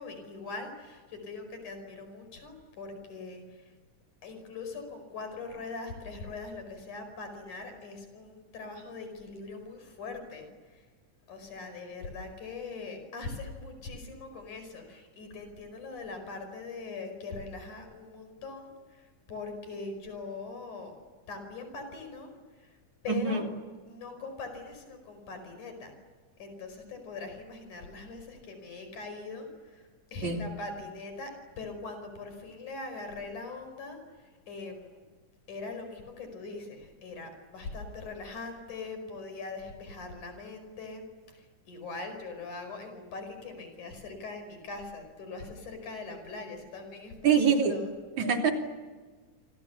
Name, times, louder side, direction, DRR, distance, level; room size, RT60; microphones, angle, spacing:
voice 1, 0.0-3.7 4.2-10.9 11.3-20.9 21.3-22.8 23.0-23.5 23.9-25.9 26.4-35.0 35.5-47.9, left 3 dB, 70° left, 7 dB, 6.6 m, -42 dB
voice 2, 23.1-23.4 30.2-30.4 47.2-47.8 48.2-48.5, right 6 dB, 65° right, 3 dB, 4.4 m, -24 dB
29.0 x 26.0 x 7.2 m, 1.4 s
omnidirectional pair, 3.6 m